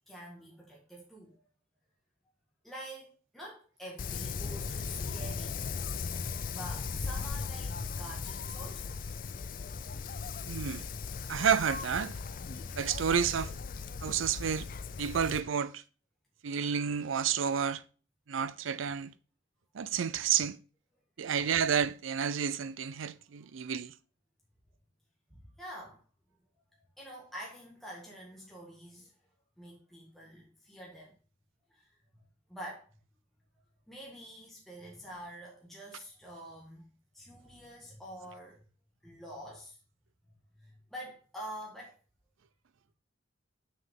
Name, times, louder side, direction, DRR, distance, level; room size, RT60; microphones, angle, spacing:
voice 1, 0.1-1.5 2.6-5.6 6.5-9.0 23.2-23.5 25.3-26.0 27.0-29.1 29.6-31.2 31.7-32.9 33.9-36.9 37.1-38.6 39.0-39.8 40.5-42.0, equal, ahead, 1.7 m, -47 dB
Wind, 4.0-15.4, left 5 dB, 45° left, 0.4 m, -38 dB
voice 2, 10.5-10.8 11.3-12.1 12.8-13.5 14.0-14.7 15.0-15.8 16.4-17.8 18.3-19.1 19.7-20.6 21.2-23.9, right 7 dB, 85° right, 0.5 m, -30 dB
7.0 x 6.4 x 3.7 m
head